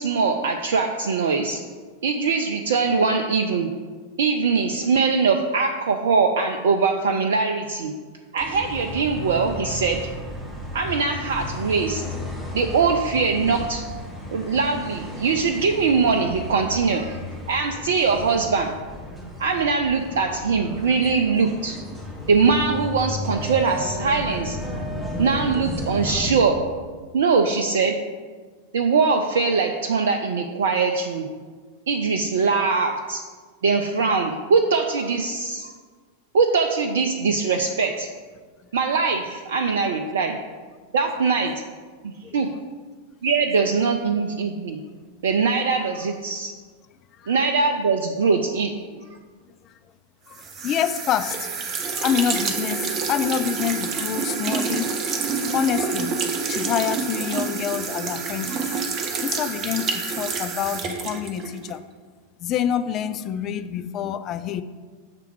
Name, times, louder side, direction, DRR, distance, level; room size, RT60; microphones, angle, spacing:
voice 1, 0.0-1.6 2.0-3.7 4.2-7.9 8.3-10.0 10.7-12.0 12.5-13.8 14.3-17.2 17.5-18.8 19.4-21.8 22.3-24.6 25.2-26.6 27.1-28.0 28.7-31.3 31.9-33.2 33.6-35.7 36.3-38.1 38.7-40.4 40.9-41.5 42.0-42.5 43.2-44.8 45.2-46.5 47.3-49.0, right 4 dB, 60° right, 4 dB, 0.4 m, -22 dB
sound 1, 8.4-26.3, left 1 dB, ahead, 1.4 m, -34 dB
voice 2, 50.3-55.0 55.5-58.8 59.2-61.8 62.4-64.6, left 9 dB, 35° left, 12 dB, 0.3 m, -27 dB
sound 2, 50.3-61.8, right 5 dB, 30° right, 0.8 m, -28 dB
6.7 x 3.4 x 6.1 m, 1.5 s
figure-of-eight pair, 90°, 0 cm